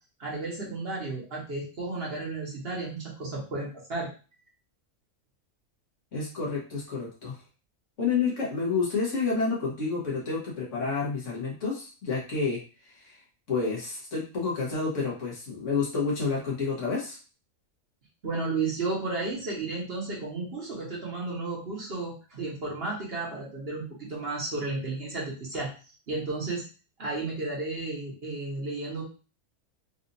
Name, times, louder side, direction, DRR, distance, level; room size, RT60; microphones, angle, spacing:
voice 1, 0.2-4.1 18.2-25.7 26.1-26.6 27.0-29.0, right 3 dB, 45° right, -4 dB, 1.3 m, -33 dB
voice 2, 6.1-7.4 8.0-13.2 13.5-17.2, left 4 dB, 60° left, -4 dB, 1.6 m, -29 dB
4.1 x 2.6 x 2.7 m, 0.35 s
omnidirectional pair, 1.5 m